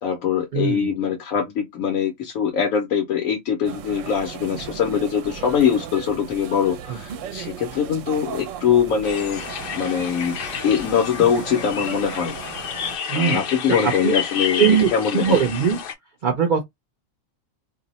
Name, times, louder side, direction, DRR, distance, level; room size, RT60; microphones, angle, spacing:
voice 1, 0.0-9.4 9.7-10.4 10.6-12.4 13.1-14.6 14.9-15.4, left 8 dB, 90° left, 1.1 m, -22 dB
voice 2, 0.5-0.9 6.9-7.0 13.1-13.4 13.8-14.1 14.6-15.8 16.2-16.6, right 7 dB, 50° right, 0.6 m, -20 dB
sound 1, 3.6-13.0, right 8 dB, 75° right, 0.9 m, -36 dB
sound 2, 9.0-15.9, left 7 dB, 60° left, 0.6 m, -30 dB
2.7 x 2.0 x 3.8 m
omnidirectional pair, 1.4 m